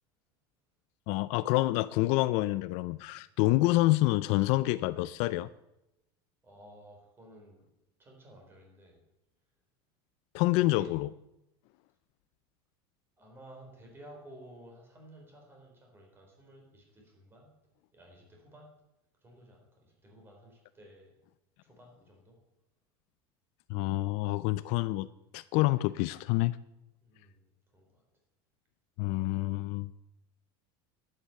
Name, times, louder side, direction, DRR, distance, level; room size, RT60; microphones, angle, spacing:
voice 1, 1.1-5.5 10.3-11.1 23.7-25.1 25.3-26.6 29.0-29.9, left 18 dB, 55° left, 17 dB, 0.4 m, -27 dB
voice 2, 6.4-7.6 8.0-9.0 10.5-10.9 13.2-17.5 17.9-18.7 19.2-21.1 21.6-22.4 27.0-28.0, right 1 dB, 20° right, 1 dB, 4.3 m, -54 dB
11.5 x 9.3 x 6.9 m, 0.89 s
supercardioid pair, 150°, 13 cm